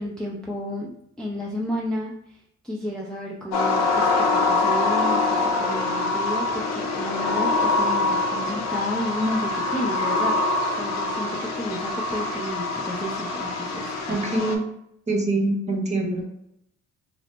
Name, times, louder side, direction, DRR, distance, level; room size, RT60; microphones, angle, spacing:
voice 1, 0.0-2.4 2.6-14.2, equal, 5° left, -3 dB, 0.4 m, -32 dB
sound 1, 3.5-14.6, left 3 dB, 60° left, 0.6 m, -24 dB
voice 2, 14.1-14.6 15.1-16.2, right 2 dB, 25° right, 1 dB, 0.7 m, -24 dB
3.2 x 2.0 x 2.8 m, 0.78 s
cardioid pair, 90°, 30 cm